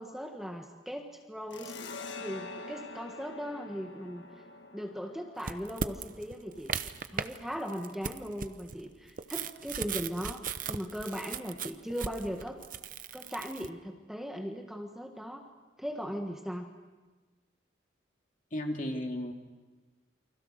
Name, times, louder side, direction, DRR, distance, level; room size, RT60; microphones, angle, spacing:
voice 1, 0.0-1.8 2.2-4.2 4.7-6.7 7.1-12.6 13.1-15.5 15.8-16.7, equal, ahead, 3 dB, 1.5 m, -38 dB
sound 1, 1.5-8.7, left 3 dB, 65° left, 1.5 m, -47 dB
sound 2, 5.4-7.4 7.7-13.7, right 6 dB, 45° right, 0.8 m, -37 dB
voice 2, 18.5-19.3, left 1 dB, 40° left, 2 dB, 2.8 m, -34 dB
29.0 x 24.5 x 6.5 m, 1.3 s
head